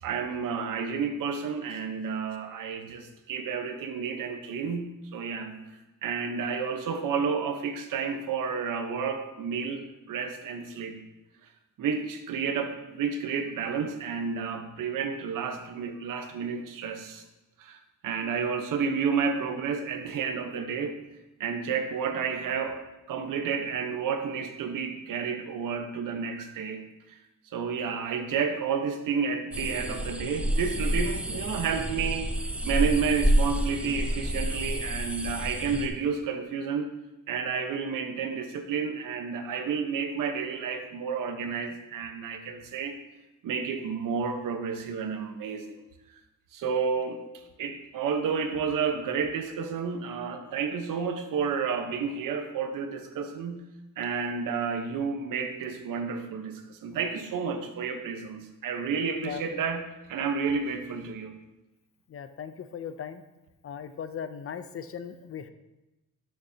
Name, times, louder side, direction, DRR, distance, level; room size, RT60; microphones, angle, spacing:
voice 1, 0.0-5.6 6.0-11.0 11.8-17.2 17.6-20.9 21.4-22.8 23.1-27.2 27.5-32.3 32.6-36.9 37.3-43.0 43.4-45.8 46.5-47.2 47.6-53.6 54.0-59.8 60.1-61.3, right 6 dB, 80° right, 6 dB, 1.1 m, -31 dB
sound 1, 29.5-35.9, right 1 dB, 5° right, 0.7 m, -28 dB
voice 2, 62.1-63.2 63.6-65.5, left 7 dB, 45° left, 10 dB, 0.6 m, -38 dB
12.5 x 6.9 x 2.8 m, 1.0 s
cardioid pair, 120°, 32 cm